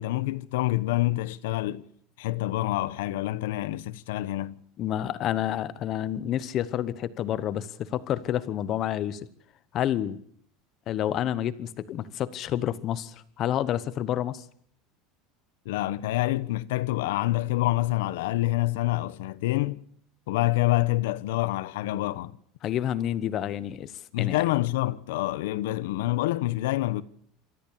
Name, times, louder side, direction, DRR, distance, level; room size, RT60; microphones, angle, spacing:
voice 1, 0.0-1.9 2.2-4.6 15.6-19.8 20.3-22.3 24.1-27.0, left 17 dB, 85° left, 1.0 m, -27 dB
voice 2, 4.8-9.2 9.7-10.2 10.9-14.4 22.6-23.9 24.2-24.4, left 11 dB, 30° left, 1.0 m, -29 dB
27.0 x 13.5 x 8.6 m
cardioid pair, 175°, 0 cm